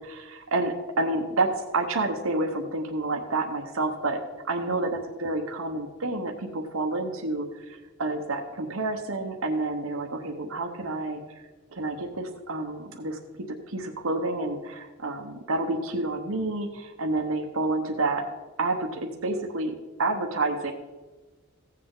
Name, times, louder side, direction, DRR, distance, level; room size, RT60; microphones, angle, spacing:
voice 1, 0.0-4.2 4.4-11.4 11.7-13.2 13.5-18.2 18.6-20.7, right 2 dB, 90° right, 3 dB, 1.1 m, -29 dB
15.5 x 7.6 x 3.8 m, 1.2 s
head